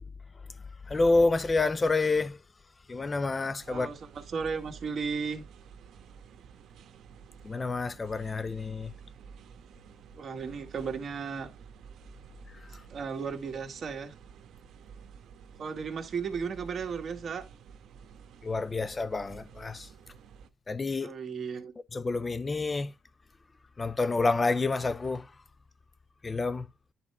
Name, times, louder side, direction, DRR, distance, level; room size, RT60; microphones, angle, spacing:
voice 1, 0.9-2.4 2.9-3.9 7.4-8.9 18.4-19.9 20.7-21.2 21.9-22.9 23.8-25.3 26.2-26.7, left 3 dB, 30° left, 0.5 m, -28 dB
sound 1, 3.6-20.5, right 6 dB, 70° right, 1.1 m, -51 dB
voice 2, 3.7-5.4 10.2-11.5 12.9-14.1 15.6-17.5 21.0-21.7, right 5 dB, 50° right, 1.8 m, -35 dB
10.5 x 4.2 x 3.5 m
cardioid pair, 90°, 0 cm